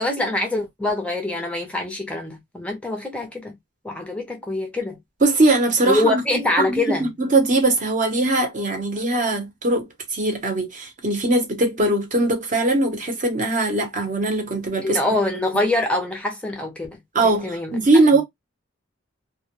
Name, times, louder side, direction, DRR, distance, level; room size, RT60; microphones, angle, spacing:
voice 1, 0.0-3.6 3.8-5.0 5.9-7.1 14.8-17.0 17.4-17.7, left 2 dB, 5° left, 0.4 m, -24 dB
voice 2, 5.2-6.2 6.6-15.0 17.1-18.2, right 2 dB, 40° right, 0.7 m, -20 dB
2.2 x 2.0 x 2.8 m
head